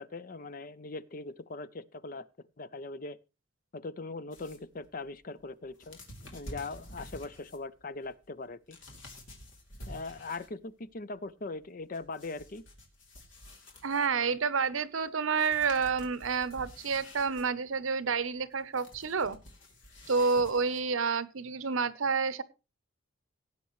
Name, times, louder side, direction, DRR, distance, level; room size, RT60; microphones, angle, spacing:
voice 1, 0.0-2.3 2.6-3.2 3.7-6.0 6.3-8.8 9.9-12.6, left 3 dB, 45° left, 15 dB, 0.6 m, -40 dB
sound 1, 4.3-10.7 11.0-14.3 15.0-15.1 15.3-21.1, left 1 dB, 70° left, 3.0 m, -50 dB
voice 2, 13.8-19.4 20.1-22.4, right 5 dB, 80° right, 16 dB, 0.8 m, -29 dB
18.0 x 8.2 x 3.1 m, 0.29 s
head